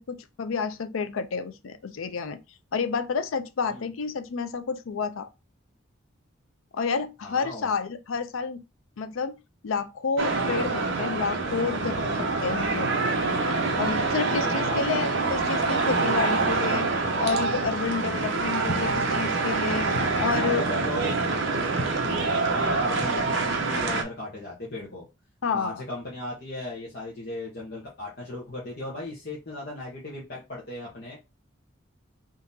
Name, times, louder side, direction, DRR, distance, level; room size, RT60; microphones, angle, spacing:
voice 1, 0.0-2.4 2.7-5.3 6.7-8.6 9.0-9.4 9.6-12.9 13.8-16.9 17.2-19.9 20.2-20.6 25.4-25.8, left 5 dB, 90° left, 0.5 m, -30 dB
voice 2, 7.2-7.7 14.5-15.1 20.3-21.7 22.5-25.1 25.5-31.2, left 1 dB, 50° left, 1.0 m, -37 dB
sound 1, 10.2-24.0, right 3 dB, 70° right, 0.7 m, -26 dB
3.6 x 2.8 x 2.7 m
head